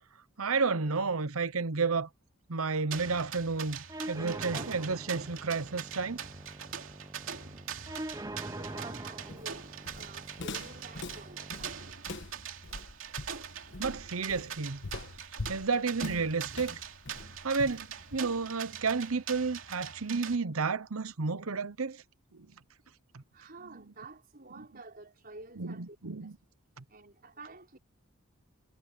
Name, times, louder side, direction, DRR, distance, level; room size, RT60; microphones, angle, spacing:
voice 1, 0.4-2.1 2.5-3.8 4.1-6.2 13.8-14.8 15.5-16.7 17.4-22.0 22.3-22.5 23.1-23.2 25.6-26.3 26.8-26.9, right 4 dB, 85° right, 1.0 m, -31 dB
sound 1, 2.9-20.4, right 7 dB, 65° right, 3.1 m, -43 dB
sound 2, 3.9-11.9, right 1 dB, 15° right, 0.9 m, -44 dB
voice 2, 7.3-12.3 23.3-26.0 26.2-26.3 26.9-27.8, right 3 dB, 45° right, 5.1 m, -51 dB
Walk footsteps, 9.3-18.5, left 2 dB, 60° left, 1.4 m, -43 dB
head